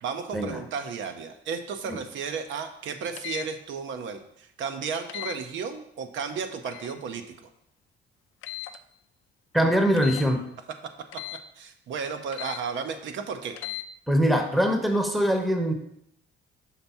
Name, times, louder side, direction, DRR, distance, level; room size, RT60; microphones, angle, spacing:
voice 1, 0.0-7.2 11.6-13.5, right 6 dB, 75° right, 7 dB, 0.7 m, -33 dB
sound 1, 3.2-3.5 5.1-5.4 6.7-7.0 8.4-8.8 10.0-10.3 11.1-11.4 12.3-12.6 13.5-13.9, left 16 dB, 80° left, 0.4 m, -36 dB
voice 2, 9.5-10.4 14.1-15.7, equal, ahead, 5 dB, 0.8 m, -23 dB
5.8 x 3.5 x 5.5 m, 0.75 s
cardioid pair, 90°, 20 cm